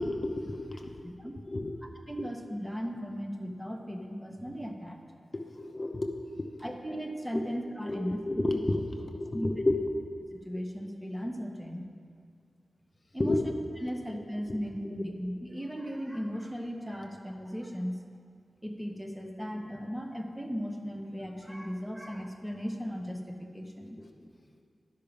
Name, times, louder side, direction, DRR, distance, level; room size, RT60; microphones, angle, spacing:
voice 1, 0.0-1.1 1.5-1.7 2.2-2.3 5.3-6.6 7.3-7.4 7.9-9.9 13.2-13.4 13.9-14.0 14.5-14.6 14.8-14.9 24.0-24.1, left 2 dB, 50° left, 2 dB, 0.8 m, -31 dB
voice 2, 1.0-1.4 2.1-5.0 6.6-8.2 9.3-9.5 10.3-11.9 13.1-13.4 13.8-17.9 18.6-24.3, equal, 10° right, 2 dB, 1.4 m, -37 dB
11.5 x 5.7 x 5.2 m, 2.2 s
cardioid pair, 40°, 0 cm